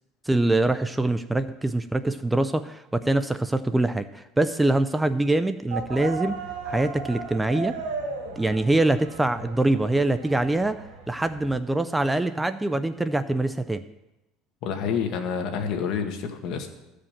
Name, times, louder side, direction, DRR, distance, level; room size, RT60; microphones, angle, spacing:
voice 1, 0.3-6.4 6.6-7.8 8.4-13.8, right 2 dB, 10° right, 12 dB, 0.4 m, -24 dB
sound 1, 5.7-11.6, right 4 dB, 90° right, 2.4 m, -36 dB
voice 2, 14.6-16.7, left 6 dB, 60° left, 5 dB, 1.6 m, -28 dB
14.0 x 5.1 x 7.4 m, 0.95 s
cardioid pair, 125°, 0 cm